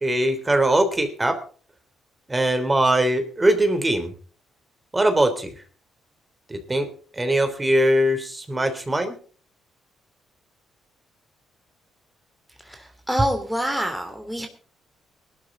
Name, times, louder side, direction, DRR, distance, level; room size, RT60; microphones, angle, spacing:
voice 1, 0.0-1.4 2.3-4.1 4.9-5.5 6.5-6.9 7.2-9.2, right 1 dB, 20° right, 7 dB, 3.2 m, -21 dB
voice 2, 12.6-14.5, equal, ahead, 4 dB, 2.9 m, -26 dB
19.5 x 12.5 x 3.9 m, 0.42 s
cardioid pair, 90°, 0 cm